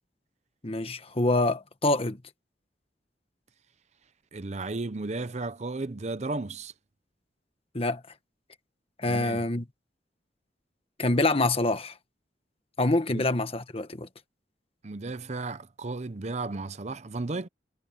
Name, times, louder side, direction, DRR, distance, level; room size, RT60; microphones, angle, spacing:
voice 1, 0.6-2.2 7.7-8.0 9.0-9.6 11.0-11.9 12.8-14.1, left 2 dB, 35° left, 1.4 m, -26 dB
voice 2, 4.3-6.7 9.1-9.5 13.1-13.3 14.8-17.5, right 3 dB, 40° right, 0.7 m, -34 dB
head